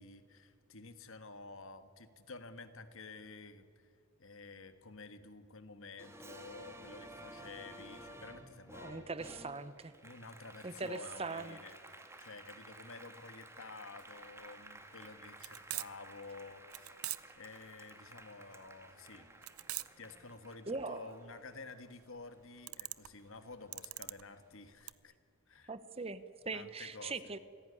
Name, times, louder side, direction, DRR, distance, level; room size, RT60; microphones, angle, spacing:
voice 1, 0.0-3.9 4.2-9.1 10.0-11.8 12.2-16.9 17.4-19.3 20.0-25.1 25.5-25.7 26.5-27.3, left 3 dB, 60° left, 10 dB, 1.6 m, -51 dB
Applause, 6.0-22.8 23.2-24.4, right 1 dB, 10° right, 2.0 m, -54 dB
voice 2, 8.8-9.9 10.6-11.6 20.7-21.1 25.7-27.4, right 3 dB, 25° right, 14 dB, 0.8 m, -41 dB
sound 1, 14.0-24.9, right 17 dB, 80° right, 0.7 m, -45 dB
25.5 x 16.5 x 9.8 m, 2.2 s
head